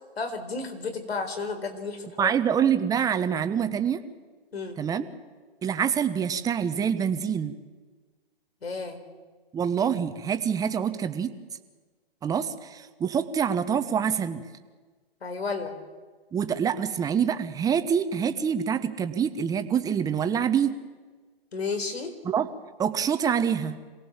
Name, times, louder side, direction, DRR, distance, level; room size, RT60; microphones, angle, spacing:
voice 1, 0.2-2.3 4.5-4.8 8.6-9.0 15.2-15.7 21.5-22.1, left 4 dB, 80° left, 6 dB, 4.3 m, -32 dB
voice 2, 2.2-4.0 4.8-5.0 5.6-7.5 9.5-11.3 12.2-14.5 16.3-20.8 22.2-22.5 22.8-23.8, right 8 dB, 10° right, 9 dB, 1.0 m, -26 dB
26.5 x 18.0 x 7.4 m, 1.4 s
hypercardioid pair, 135°, 30 cm